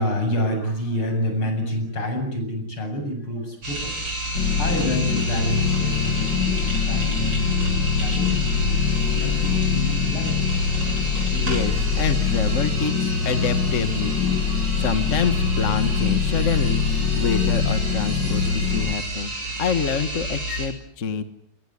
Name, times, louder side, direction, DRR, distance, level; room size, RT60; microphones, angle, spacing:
voice 1, 0.0-10.4, equal, 85° left, 5 dB, 9.0 m, -29 dB
sound 1, 3.6-20.7, right 1 dB, 70° right, 8.8 m, -31 dB
sound 2, 4.3-19.0, left 6 dB, 60° left, 2.3 m, -23 dB
voice 2, 11.3-21.2, left 6 dB, 40° left, 10 dB, 1.7 m, -27 dB
27.0 x 22.0 x 9.9 m, 0.69 s
omnidirectional pair, 2.3 m